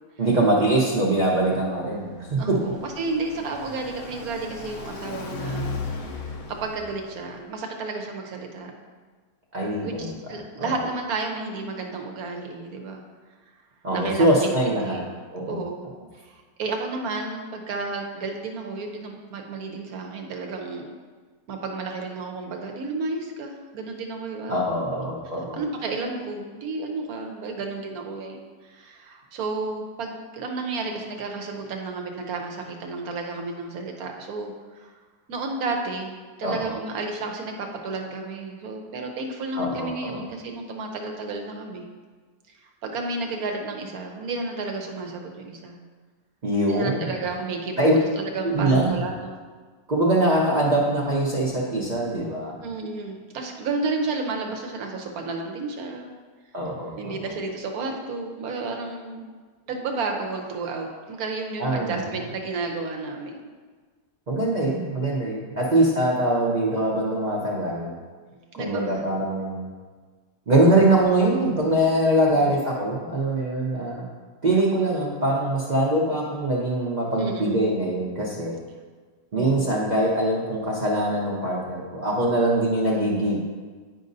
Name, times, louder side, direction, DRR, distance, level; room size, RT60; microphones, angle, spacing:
voice 1, 0.2-2.6 9.5-10.2 10.6-10.7 13.8-15.0 15.3-15.6 24.5-25.6 36.4-36.7 39.5-40.2 46.4-47.2 47.8-47.9 48.5-48.9 49.9-52.6 56.5-57.1 61.6-62.1 64.3-67.9 68.6-69.7 70.5-74.0 74.4-78.6 79.3-83.4, right 1 dB, 45° right, -4 dB, 0.6 m, -23 dB
Car passing by, 1.9-7.4, left 3 dB, 60° left, 0.8 m, -36 dB
voice 2, 2.4-5.8 6.0-8.7 9.8-9.9 10.3-13.0 13.9-15.1 15.5-20.9 21.5-24.8 25.5-35.0 35.3-41.9 42.5-45.8 46.7-49.4 52.6-56.1 57.0-59.3 59.7-63.4 68.6-69.5 72.3-72.6 77.2-77.6 79.3-79.7, right 3 dB, 65° right, 2 dB, 1.1 m, -32 dB
10.0 x 5.2 x 2.6 m, 1.5 s
omnidirectional pair, 1.9 m